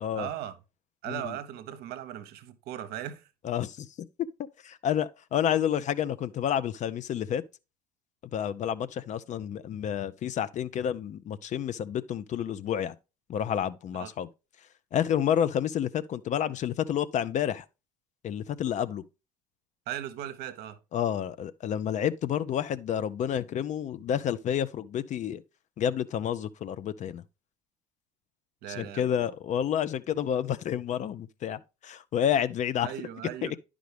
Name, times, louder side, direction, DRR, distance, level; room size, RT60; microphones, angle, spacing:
voice 1, 0.1-0.6 1.0-3.2 14.0-14.1 19.9-20.8 28.6-29.3 32.8-33.5, right 11 dB, 55° right, 0.8 m, -38 dB
voice 2, 3.4-4.1 4.6-7.4 8.3-13.0 13.3-14.3 14.9-17.6 18.2-19.0 20.9-25.4 25.8-27.2 28.8-32.9 33.4-33.6, left 9 dB, 40° left, 0.5 m, -29 dB
10.0 x 5.0 x 3.3 m
hypercardioid pair, 65°, 20 cm